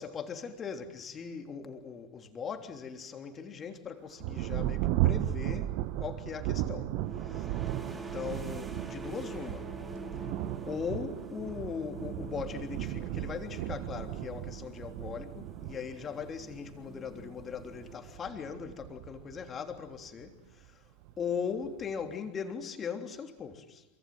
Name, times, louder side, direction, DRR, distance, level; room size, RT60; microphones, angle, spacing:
voice 1, 0.0-7.6 7.9-9.7 10.7-20.9 21.2-23.9, left 6 dB, 20° left, 3.3 m, -39 dB
Thunder, 4.2-20.3 21.0-21.1 21.7-22.1, right 14 dB, 45° right, 1.1 m, -35 dB
sound 1, 6.9-18.5, right 3 dB, 10° right, 2.8 m, -46 dB
28.5 x 24.5 x 7.8 m
figure-of-eight pair, 90°, 0 cm